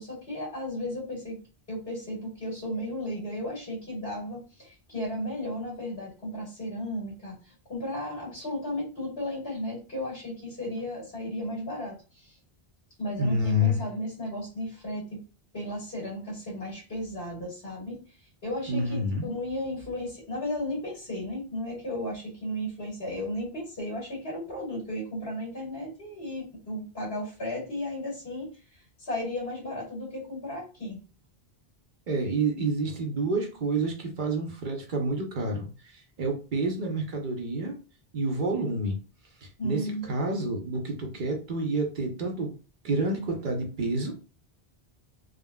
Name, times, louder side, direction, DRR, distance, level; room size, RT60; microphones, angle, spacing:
voice 1, 0.0-1.4 1.7-12.4 13.0-15.2 15.5-31.0 39.6-40.1, left 1 dB, 70° left, -4 dB, 1.6 m, -34 dB
voice 2, 13.2-13.8 18.7-19.3 32.1-37.8 38.1-39.0 39.4-42.5 42.8-44.2, right 1 dB, 55° right, 2 dB, 0.8 m, -29 dB
3.6 x 2.2 x 2.2 m, 0.34 s
omnidirectional pair, 1.0 m